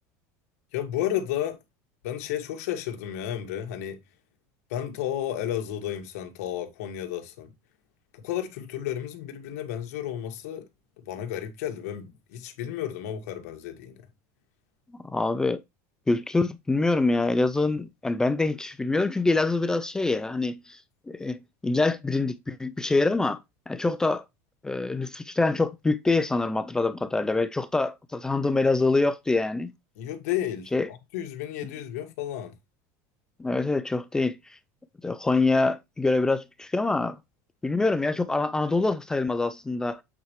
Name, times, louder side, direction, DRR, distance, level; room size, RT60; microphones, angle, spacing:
voice 1, 0.7-1.6 2.0-4.0 4.7-7.5 8.1-10.6 11.0-14.0 30.0-32.5, left 11 dB, 85° left, 1.7 m, -32 dB
voice 2, 15.0-15.6 16.1-20.8 21.1-23.4 23.7-24.2 24.6-29.7 30.7-30.9 33.4-34.4 35.0-37.2 37.6-40.0, left 3 dB, 10° left, 0.4 m, -25 dB
8.0 x 4.5 x 3.1 m
cardioid pair, 160°, 8 cm